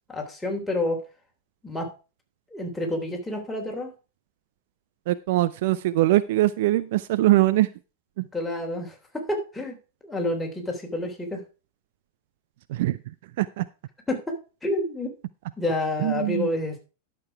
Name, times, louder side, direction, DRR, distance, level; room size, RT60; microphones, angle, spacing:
voice 1, 0.1-1.0 1.6-1.9 2.5-3.9 8.3-9.8 10.0-11.4 14.1-14.4 14.6-15.1 15.6-16.8, left 1 dB, 5° left, 0 dB, 3.3 m, -29 dB
voice 2, 5.1-7.7 8.2-8.3 12.7-13.0 13.4-13.7 16.0-16.5, right 16 dB, 50° right, 15 dB, 0.5 m, -22 dB
11.5 x 6.8 x 4.7 m, 0.33 s
figure-of-eight pair, 90°, 0 cm